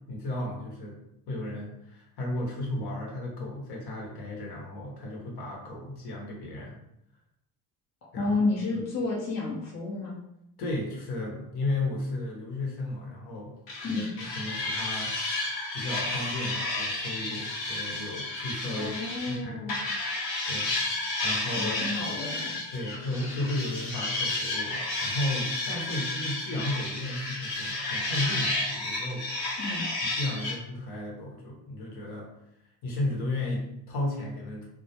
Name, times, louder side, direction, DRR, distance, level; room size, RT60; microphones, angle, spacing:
voice 1, 0.1-1.0 1.3-6.7 8.1-8.4 8.7-8.8 10.6-13.5 13.9-15.4 15.7-18.9 19.3-19.7 20.5-20.7 21.2-21.7 22.7-29.2 30.1-32.3 32.8-34.6, left 2 dB, 50° left, -2 dB, 1.0 m, -34 dB
voice 2, 8.1-10.2 13.8-14.1 18.8-19.8 21.5-22.6 29.6-29.9, left 3 dB, 35° left, -5 dB, 0.7 m, -31 dB
sound 1, 13.7-19.4 19.7-30.6, left 2 dB, 75° left, 1.0 m, -32 dB
2.2 x 2.1 x 2.8 m, 0.80 s
supercardioid pair, 70°, 50 cm